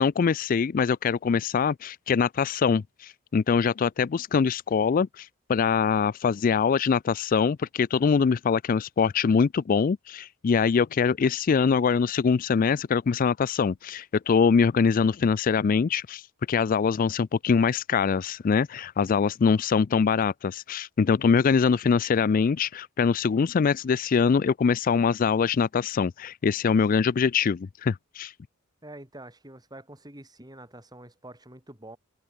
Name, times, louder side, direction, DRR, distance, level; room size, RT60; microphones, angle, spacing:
voice 1, 0.0-16.2 16.5-28.3, left 6 dB, 40° left, 0.3 m, -23 dB
voice 2, 28.8-32.0, right 1 dB, 20° right, 6.8 m, -46 dB
head